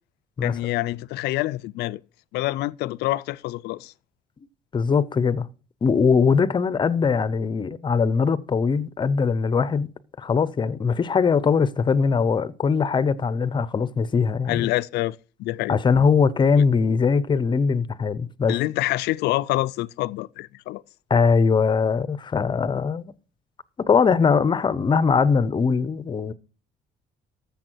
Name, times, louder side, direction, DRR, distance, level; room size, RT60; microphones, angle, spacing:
voice 1, 0.4-2.0 2.3-3.9 14.5-15.8 18.5-20.8, left 17 dB, 80° left, 0.5 m, -26 dB
voice 2, 4.7-5.5 5.8-9.9 10.2-14.7 15.7-18.5 21.1-23.1 23.8-26.3, left 5 dB, 30° left, 0.7 m, -21 dB
13.5 x 7.1 x 4.5 m
cardioid pair, 110°, 17 cm